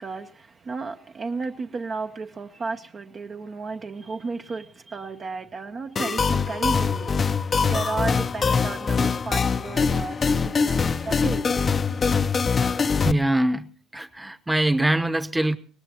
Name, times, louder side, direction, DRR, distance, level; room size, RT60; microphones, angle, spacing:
voice 1, 0.0-11.6, right 4 dB, 35° right, 0.7 m, -33 dB
sound 1, 6.0-13.1, left 5 dB, 35° left, 0.6 m, -23 dB
voice 2, 13.0-15.6, right 1 dB, 10° right, 1.0 m, -23 dB
21.5 x 18.5 x 2.9 m
hypercardioid pair, 70°, 0 cm